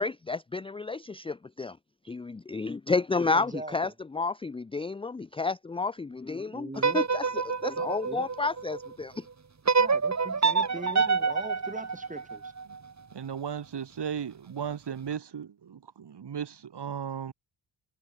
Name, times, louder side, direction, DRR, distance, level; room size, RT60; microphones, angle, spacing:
voice 1, 0.0-1.8 2.0-6.7 6.9-9.3, left 4 dB, 10° left, 0.5 m, -31 dB
voice 2, 3.3-3.9 6.5-7.1 8.0-8.3 9.8-12.5, right 2 dB, 15° right, 7.5 m, -40 dB
sound 1, 6.7-8.9 9.7-12.8, right 5 dB, 35° right, 3.4 m, -27 dB
voice 3, 13.1-17.3, right 8 dB, 60° right, 5.8 m, -36 dB
cardioid pair, 65°, 47 cm